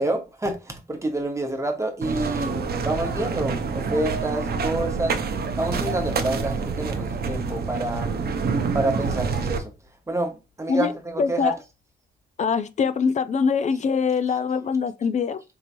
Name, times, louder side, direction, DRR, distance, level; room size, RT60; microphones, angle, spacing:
voice 1, 0.0-5.2 5.6-8.1 8.7-9.7 10.1-11.5, right 1 dB, 15° right, 1.0 m, -28 dB
sound 1, 2.0-9.6, right 5 dB, 60° right, 0.6 m, -27 dB
voice 2, 11.2-11.6 12.4-15.4, left 5 dB, 40° left, 0.4 m, -23 dB
4.6 x 3.0 x 2.5 m
wide cardioid pair, 140°, 18 cm